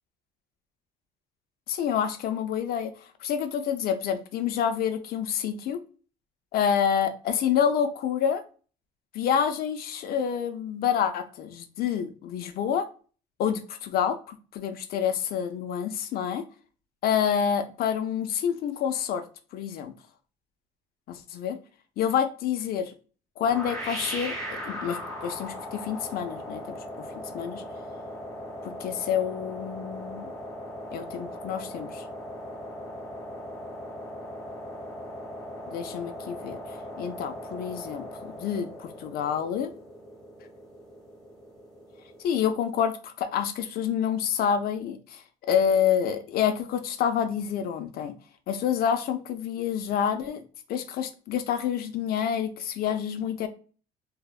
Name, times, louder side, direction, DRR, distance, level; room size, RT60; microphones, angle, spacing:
voice 1, 1.7-2.9 3.2-5.8 6.5-8.4 9.1-12.9 13.4-16.4 17.0-19.2 19.5-19.9 21.1-21.6 22.0-23.0 23.4-26.6 27.0-27.1 27.3-27.6 28.6-30.3 30.9-32.0 35.7-36.6 37.0-39.7 42.2-45.2 45.5-48.1 48.5-50.4 50.7-53.5, left 8 dB, 65° left, 8 dB, 0.5 m, -28 dB
sound 1, 23.4-42.2, equal, 5° left, 1.1 m, -39 dB
2.7 x 2.1 x 2.3 m, 0.38 s
cardioid pair, 110°, 17 cm